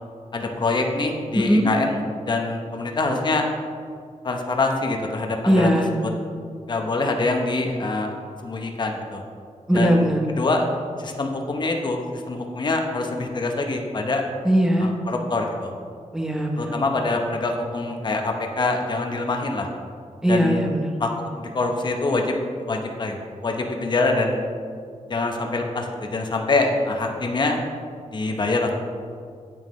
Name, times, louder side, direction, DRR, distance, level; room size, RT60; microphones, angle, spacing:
voice 1, 0.3-3.5 4.2-5.7 6.0-6.1 6.7-8.2 8.4-9.2 9.7-10.1 10.4-10.7 11.0-14.2 14.8-15.7 16.6-19.7 20.3-20.6 21.0-21.1 21.4-22.3 22.7-23.2 23.4-24.4 25.1-27.6 28.1-28.7, left 3 dB, 35° left, 3 dB, 0.8 m, -25 dB
voice 2, 1.3-1.7 5.5-5.9 9.7-10.2 14.4-14.9 16.1-16.8 20.2-20.9, equal, 5° right, 1 dB, 0.8 m, -19 dB
9.1 x 8.8 x 3.1 m, 2.1 s
wide cardioid pair, 175°, 13 cm